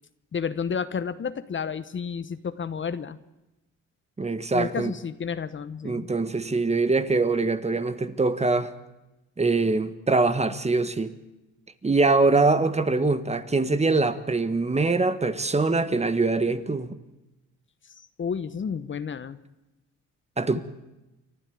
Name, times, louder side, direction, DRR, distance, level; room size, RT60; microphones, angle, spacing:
voice 1, 0.3-3.2 4.5-6.1 18.2-19.4, left 6 dB, 40° left, 1.0 m, -31 dB
voice 2, 4.2-4.9 5.8-8.7 9.4-11.1 11.8-16.9 20.4-20.6, right 3 dB, 20° right, 1.5 m, -23 dB
29.5 x 12.0 x 8.6 m
cardioid pair, 90°, 30 cm